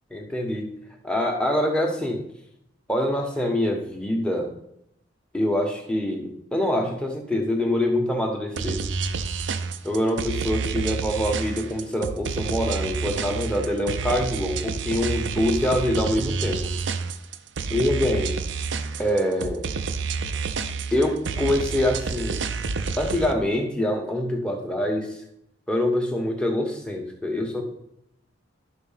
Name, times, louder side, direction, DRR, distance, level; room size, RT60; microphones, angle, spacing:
voice 1, 0.1-0.7 1.0-2.2 2.9-4.5 5.3-8.8 9.8-16.7 17.7-18.4 19.0-19.6 20.9-22.4 23.0-25.1 25.7-27.6, left 1 dB, 5° left, 1 dB, 1.2 m, -25 dB
sound 1, 8.6-23.3, right 5 dB, 75° right, 0.6 m, -29 dB
11.5 x 4.0 x 5.7 m, 0.77 s
head